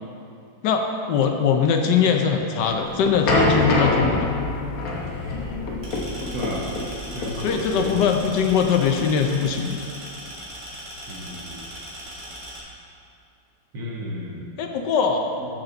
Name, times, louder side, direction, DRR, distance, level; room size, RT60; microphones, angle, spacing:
voice 1, 0.6-4.3 7.4-9.8 14.6-15.3, left 6 dB, 70° left, 4 dB, 1.2 m, -21 dB
sound 1, 2.6-9.5, left 2 dB, 55° left, 1.4 m, -25 dB
sound 2, 5.8-12.6, equal, 50° right, 2.3 m, -39 dB
voice 2, 6.3-6.6 7.1-8.3 11.1-11.6 13.7-14.5 15.4-15.5, equal, 70° right, -2 dB, 1.9 m, -33 dB
13.5 x 5.7 x 3.9 m, 2.6 s
omnidirectional pair, 2.1 m